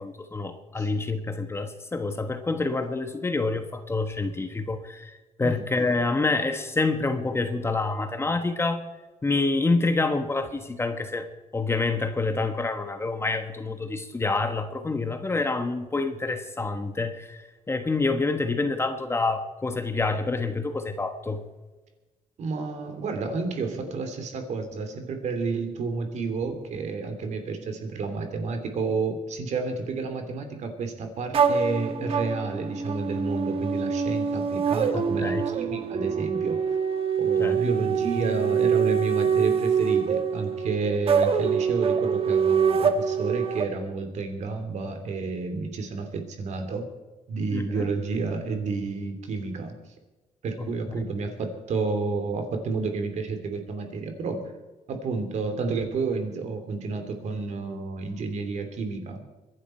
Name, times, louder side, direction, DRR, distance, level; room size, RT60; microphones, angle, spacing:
voice 1, 0.0-8.8 9.2-21.4 34.9-35.8 37.4-37.6 47.5-47.9 50.6-50.7, left 3 dB, 20° left, 7 dB, 1.3 m, -27 dB
voice 2, 22.4-36.6 37.2-46.8 47.3-49.8 50.4-54.5 54.9-59.2, right 4 dB, 60° right, 6 dB, 3.0 m, -30 dB
sound 1, 31.3-43.6, right 6 dB, 45° right, 1.4 m, -25 dB
24.0 x 11.0 x 4.5 m, 1.2 s
cardioid pair, 125°, 13 cm